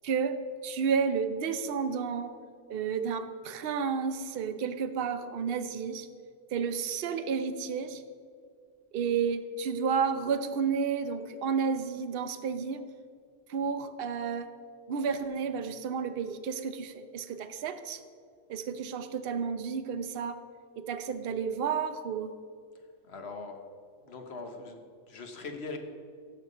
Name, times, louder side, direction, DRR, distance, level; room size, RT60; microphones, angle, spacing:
voice 1, 0.0-2.3 2.7-6.1 6.5-8.0 8.9-12.8 13.5-14.5 14.9-18.0 18.5-20.4 20.8-22.3, right 6 dB, 55° right, 9 dB, 0.8 m, -31 dB
voice 2, 23.0-23.6 24.0-25.8, left 3 dB, 55° left, 5 dB, 1.3 m, -41 dB
15.5 x 5.8 x 5.3 m, 2.1 s
omnidirectional pair, 1.3 m